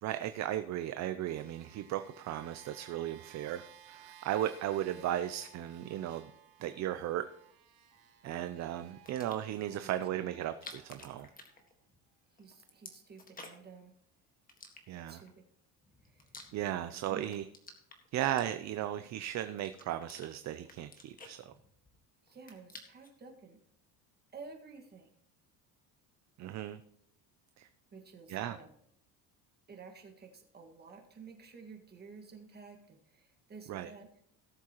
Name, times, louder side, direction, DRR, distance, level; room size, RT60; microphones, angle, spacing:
voice 1, 0.0-6.3 6.6-7.3 8.2-11.3 14.9-15.2 16.5-17.4 18.1-21.5 26.4-26.8 27.6-27.7 28.3-28.6 33.7-33.9, right 12 dB, 45° right, 10 dB, 0.6 m, -36 dB
sound 1, 1.2-11.7 12.5-12.6, right 10 dB, 80° right, 1.6 m, -58 dB
sound 2, 9.0-9.6 10.4-12.1 12.4-13.8 14.5-15.3 15.8-16.9 17.2-18.9 19.4-20.3 20.6-22.0 22.3-23.2, left 3 dB, 20° left, 1.7 m, -52 dB
voice 2, 9.7-10.3 12.4-13.9 14.9-15.4 16.0-16.3 17.1-17.4 22.2-23.6 24.3-25.1 27.9-28.7 29.7-34.2, right 5 dB, 25° right, 2 dB, 1.8 m, -52 dB
18.0 x 7.3 x 3.0 m, 0.71 s
cardioid pair, 140°, 39 cm